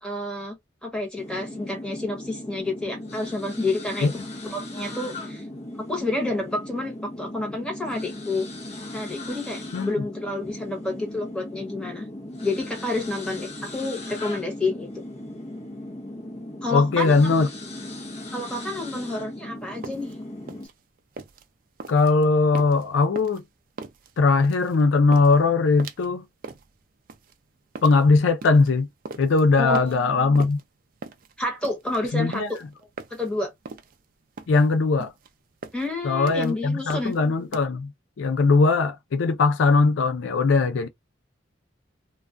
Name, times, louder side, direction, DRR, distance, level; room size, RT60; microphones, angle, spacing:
voice 1, 0.0-0.6 0.8-4.1 4.5-5.4 5.9-8.5 8.9-12.1 12.4-15.0 16.6-17.3 18.3-20.1 29.6-30.5 31.4-32.6 33.1-33.5 35.7-37.1, left 2 dB, 5° left, 1.0 m, -29 dB
sound 1, 1.1-20.7, left 1 dB, 35° left, 0.6 m, -38 dB
voice 2, 16.7-17.5 21.9-23.4 24.2-26.2 27.8-28.9 29.2-30.6 32.1-32.5 34.5-35.1 36.0-37.9 38.2-40.9, left 3 dB, 80° left, 0.4 m, -20 dB
sound 2, 19.6-37.6, right 4 dB, 45° right, 0.4 m, -41 dB
2.4 x 2.2 x 2.4 m
head